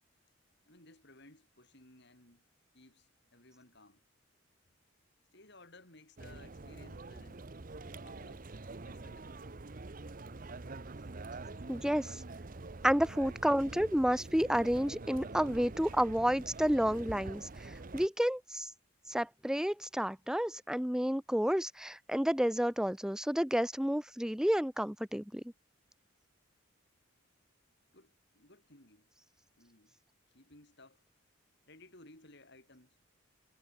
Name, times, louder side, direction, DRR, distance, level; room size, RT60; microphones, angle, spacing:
voice 1, 0.7-2.4 2.7-4.0 5.3-7.4 8.0-8.5 8.8-9.6 27.9-29.1 29.6-30.0 30.3-31.0 31.7-33.0, left 2 dB, 55° left, 5.8 m, -59 dB
sound 1, 6.2-18.1, right 3 dB, 40° right, 0.8 m, -46 dB
voice 2, 11.7-12.2 12.8-18.7 19.1-25.4, equal, 5° right, 0.8 m, -30 dB
head